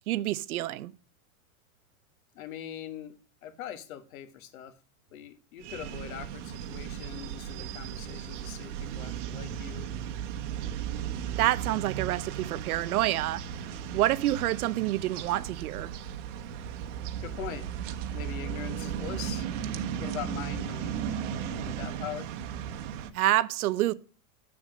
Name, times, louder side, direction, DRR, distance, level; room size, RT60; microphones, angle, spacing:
voice 1, 0.1-0.9 11.4-13.4 13.9-15.9 23.1-23.9, right 15 dB, 90° right, 0.8 m, -27 dB
voice 2, 2.3-3.1 3.4-4.7 5.1-9.9 17.2-17.7 18.1-19.5 20.0-22.3, left 10 dB, 70° left, 1.6 m, -42 dB
sound 1, 5.6-23.1, right 9 dB, 55° right, 1.2 m, -36 dB
8.1 x 7.1 x 5.0 m
supercardioid pair, 165°, 43 cm